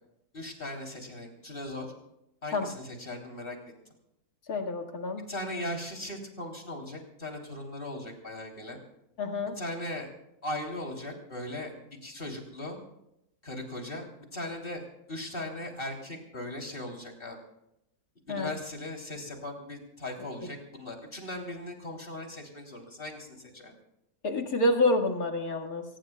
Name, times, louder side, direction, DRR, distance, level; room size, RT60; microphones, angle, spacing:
voice 1, 0.3-1.9 2.4-3.6 3.9-4.0 5.3-8.8 9.6-10.1 10.4-11.7 12.0-12.8 13.4-14.1 14.3-17.4 18.3-23.7, left 1 dB, 35° left, 1 dB, 3.6 m, -38 dB
voice 2, 4.5-5.2 9.2-9.6 18.3-18.5 24.2-25.8, left 2 dB, 70° left, 3 dB, 2.5 m, -28 dB
24.0 x 19.5 x 2.3 m, 0.80 s
omnidirectional pair, 1.6 m